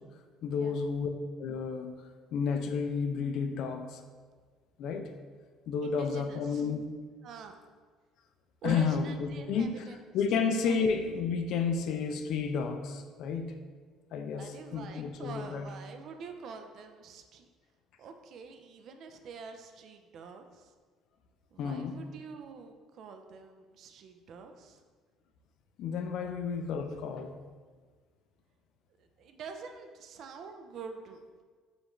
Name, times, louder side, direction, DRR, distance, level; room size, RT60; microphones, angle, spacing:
voice 1, 0.4-1.1 1.4-2.0 2.3-4.0 4.8-5.1 5.7-6.8 8.6-9.9 10.1-13.5 14.1-15.7 21.6-22.0 25.8-27.3, left 5 dB, 65° left, 7 dB, 0.4 m, -31 dB
voice 2, 5.8-6.7 7.2-7.6 8.6-10.0 10.7-10.8 14.4-17.5 18.0-20.7 21.5-24.8 26.2-26.4 29.0-31.4, right 5 dB, 55° right, 6 dB, 0.4 m, -46 dB
5.1 x 2.4 x 3.0 m, 1.5 s
cardioid pair, 135°, 0 cm